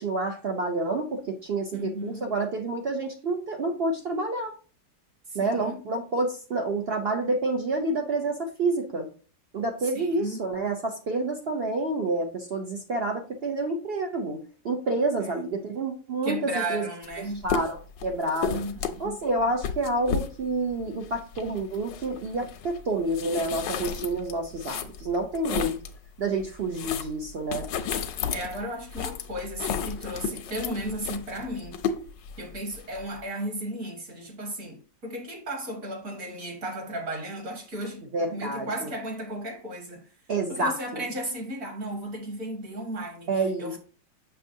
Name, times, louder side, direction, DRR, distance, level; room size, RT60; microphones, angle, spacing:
voice 1, 0.0-4.5 5.3-9.1 9.5-14.4 14.6-16.9 17.4-18.6 19.0-25.8 26.2-27.7 38.1-38.9 40.3-41.0 43.3-43.8, right 2 dB, 75° right, 0.5 m, -28 dB
voice 2, 1.7-2.3 5.3-5.8 9.9-10.4 15.2-15.5 16.2-17.5 18.5-19.2 28.3-31.8 32.4-40.1 40.5-43.3 43.6-43.8, right 1 dB, 50° right, 2.0 m, -35 dB
sound 1, 17.0-17.2 17.4-26.0 26.4-33.2, left 7 dB, 85° left, 1.3 m, -33 dB
6.7 x 6.2 x 2.7 m
omnidirectional pair, 1.9 m